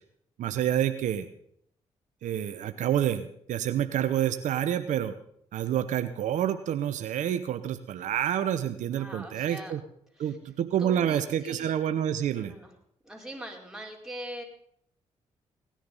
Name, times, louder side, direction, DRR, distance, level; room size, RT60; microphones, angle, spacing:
voice 1, 0.4-1.3 2.2-5.1 5.5-9.8 10.2-12.5, right 10 dB, 75° right, 10 dB, 0.9 m, -28 dB
voice 2, 8.9-9.8 10.2-10.4 10.8-11.8 12.2-12.7 13.0-14.4, equal, 5° right, 0 dB, 4.7 m, -42 dB
18.0 x 10.5 x 5.5 m, 0.68 s
supercardioid pair, 55°, 13 cm